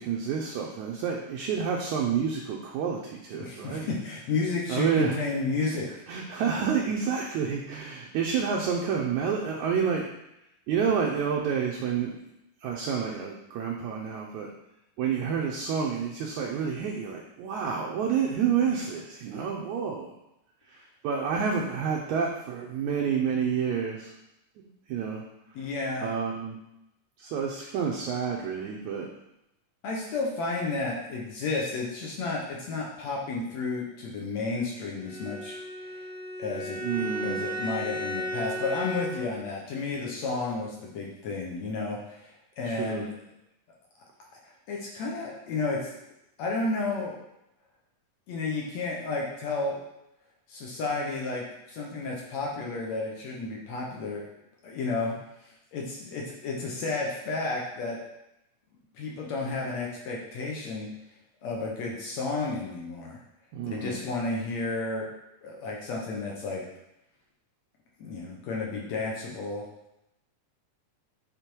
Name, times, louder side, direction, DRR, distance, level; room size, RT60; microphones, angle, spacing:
voice 1, 0.0-3.9 4.7-5.2 6.1-10.1 10.7-12.1 12.6-14.5 15.0-20.1 20.7-24.1 24.9-25.2 26.0-26.6 27.2-29.1 36.8-37.4 42.7-43.1 63.5-64.0, right 6 dB, 75° right, 0 dB, 1.8 m, -29 dB
voice 2, 3.3-5.9 25.6-26.1 29.8-35.6 36.4-43.1 44.4-45.9 46.4-47.1 48.3-49.8 50.5-54.2 54.6-55.2 55.4-58.0 59.0-60.9 61.4-63.2 63.7-65.1 65.4-66.6 68.0-69.7, left 3 dB, 65° left, -2 dB, 1.9 m, -32 dB
Bowed string instrument, 35.0-39.5, equal, 50° left, 3.5 m, -35 dB
8.3 x 4.2 x 4.5 m, 0.86 s
omnidirectional pair, 3.9 m